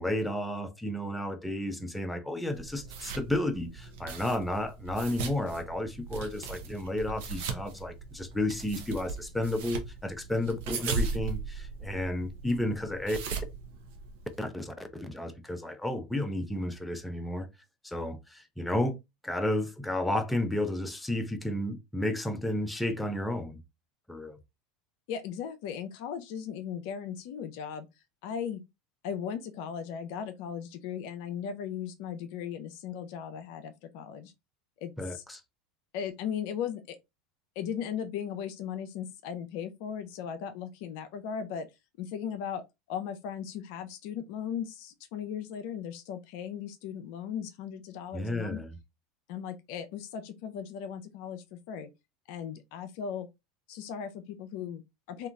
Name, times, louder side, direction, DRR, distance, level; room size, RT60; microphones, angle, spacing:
voice 1, 0.0-13.2 14.4-17.5 17.8-19.0 19.2-23.6 24.1-24.4 35.0-35.4 48.1-48.8, left 1 dB, 5° left, 0.5 m, -32 dB
sound 1, 2.5-14.4, right 4 dB, 65° right, 0.6 m, -38 dB
voice 2, 25.1-27.9 28.2-28.6 29.0-34.3 34.8-35.2 35.9-37.0 37.6-41.7 42.0-42.6 42.9-48.6 49.3-51.9 52.3-53.3 53.7-55.3, left 8 dB, 60° left, 0.4 m, -37 dB
2.8 x 2.3 x 2.3 m
hypercardioid pair, 80°, 0 cm